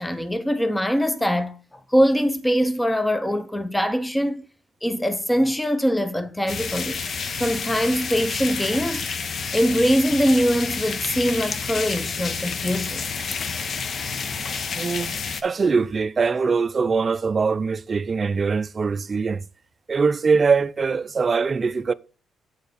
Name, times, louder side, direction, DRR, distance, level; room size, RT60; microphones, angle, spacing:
voice 1, 0.0-4.4 4.8-7.0 7.4-9.0 9.5-13.0, equal, 10° left, 0.7 m, -22 dB
sound 1, 6.5-15.4, left 5 dB, 50° left, 0.7 m, -29 dB
voice 2, 14.7-15.1 15.4-19.4 19.9-21.9, right 5 dB, 35° right, 0.4 m, -22 dB
8.0 x 4.5 x 5.0 m
cardioid pair, 90°, 0 cm